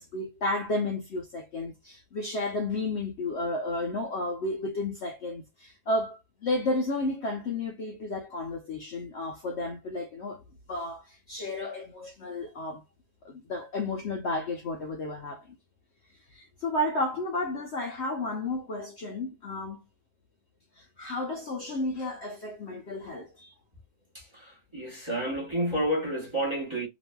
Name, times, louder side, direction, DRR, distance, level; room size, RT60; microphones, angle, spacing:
voice 1, 0.0-10.4 10.7-12.8 13.2-15.5 16.3-19.8 20.8-23.6, left 2 dB, 60° left, 0.8 m, -32 dB
voice 2, 24.1-26.9, right 1 dB, 20° right, 0.9 m, -30 dB
2.9 x 2.6 x 2.2 m
omnidirectional pair, 1.7 m